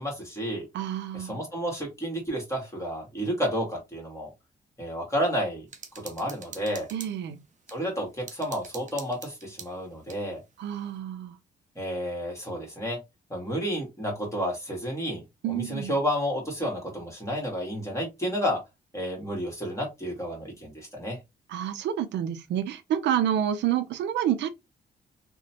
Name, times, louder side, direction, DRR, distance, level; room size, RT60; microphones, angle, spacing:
voice 1, 0.0-0.7 1.1-4.3 4.8-5.6 5.9-6.9 7.7-10.4 11.7-13.0 13.3-18.6 18.9-21.2, equal, 15° left, 1.5 m, -31 dB
voice 2, 0.7-1.4 6.9-7.4 10.6-11.4 15.4-15.9 21.5-24.5, right 10 dB, 80° right, 0.5 m, -28 dB
sound 1, 5.7-7.8 8.3-10.2, right 5 dB, 45° right, 0.7 m, -45 dB
2.9 x 2.1 x 2.8 m
cardioid pair, 70°, 18 cm